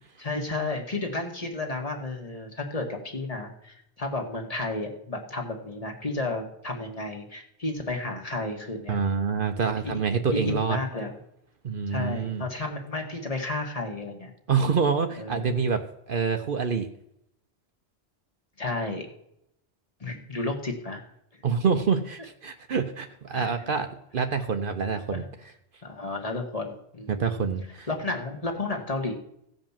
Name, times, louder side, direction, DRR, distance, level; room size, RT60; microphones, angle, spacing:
voice 1, 0.2-9.0 9.6-10.0 10.3-11.1 11.9-14.3 15.2-15.5 18.6-19.1 20.0-21.0 23.3-23.5 25.1-25.2 25.8-27.2 27.9-29.1, left 2 dB, 35° left, 3 dB, 1.7 m, -32 dB
voice 2, 8.9-10.8 11.6-12.5 14.5-16.9 21.4-25.5 27.1-27.9, right 5 dB, 55° right, 7 dB, 0.9 m, -27 dB
15.5 x 5.3 x 7.2 m, 0.75 s
omnidirectional pair, 1.1 m